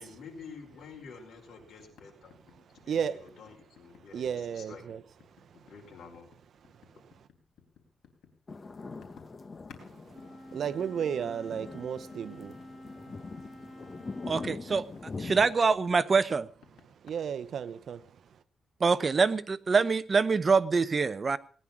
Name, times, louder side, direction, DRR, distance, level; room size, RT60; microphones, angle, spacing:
voice 1, 0.0-4.8 5.7-6.3, left 5 dB, 70° left, 5.2 m, -49 dB
sound 1, 1.8-9.9 10.2-17.1, left 6 dB, 90° left, 3.7 m, -58 dB
voice 2, 2.9-3.2 4.1-5.0 9.9-10.2 10.5-12.6 17.0-18.1, right 8 dB, 65° right, 0.8 m, -33 dB
sound 2, 8.5-15.5, left 4 dB, 30° left, 1.0 m, -43 dB
Wind instrument woodwind instrument, 10.1-14.6, left 1 dB, 15° left, 1.7 m, -49 dB
voice 3, 14.2-14.8 15.2-16.5 18.8-21.4, right 4 dB, 35° right, 0.8 m, -25 dB
18.5 x 10.0 x 6.1 m
cardioid pair, 125°, 0 cm